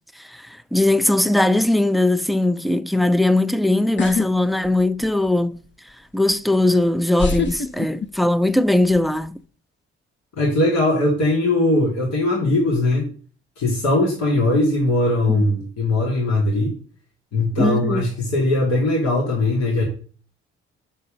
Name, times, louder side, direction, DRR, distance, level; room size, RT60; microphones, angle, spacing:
voice 1, 0.2-5.6 6.1-9.4 15.3-15.4 17.6-18.0, left 1 dB, ahead, 0.5 m, -19 dB
sound 1, 4.0-4.3 4.6-5.3 6.3-6.4 7.2-8.5 8.8-9.3, left 4 dB, 40° left, 0.8 m, -25 dB
voice 2, 10.4-13.1 13.6-16.7 17.3-19.8, left 2 dB, 65° left, 2.5 m, -20 dB
6.6 x 5.7 x 5.1 m
hypercardioid pair, 45°, 29 cm